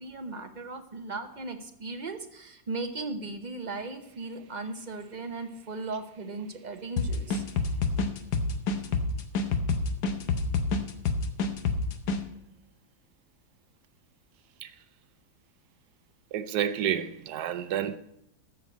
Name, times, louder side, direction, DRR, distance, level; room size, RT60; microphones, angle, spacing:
voice 1, 0.0-7.4, right 3 dB, 35° right, 0.9 m, -37 dB
sound 1, 7.0-12.2, left 4 dB, 80° left, 1.6 m, -27 dB
voice 2, 16.3-18.0, right 10 dB, 75° right, 1.2 m, -29 dB
13.5 x 4.6 x 8.3 m
omnidirectional pair, 1.7 m